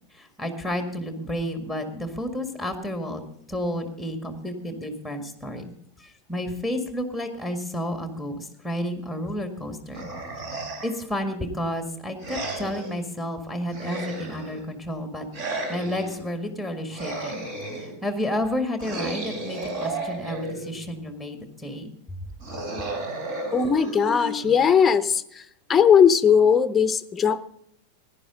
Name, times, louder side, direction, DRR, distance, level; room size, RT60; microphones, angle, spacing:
voice 1, 0.1-3.2 3.5-5.6 6.0-10.1 10.8-15.3 15.7-17.5 18.0-21.9, left 1 dB, 5° right, 6 dB, 1.8 m, -31 dB
sound 1, 9.9-11.1 12.2-13.0 13.7-14.6 15.3-16.2 16.9-18.0 18.8-20.9 22.4-24.8, right 2 dB, 45° right, 3.4 m, -33 dB
voice 2, 23.5-25.2 25.7-27.5, left 7 dB, 15° left, 13 dB, 0.8 m, -18 dB
17.0 x 10.5 x 3.9 m, 0.70 s
figure-of-eight pair, 90°, 0 cm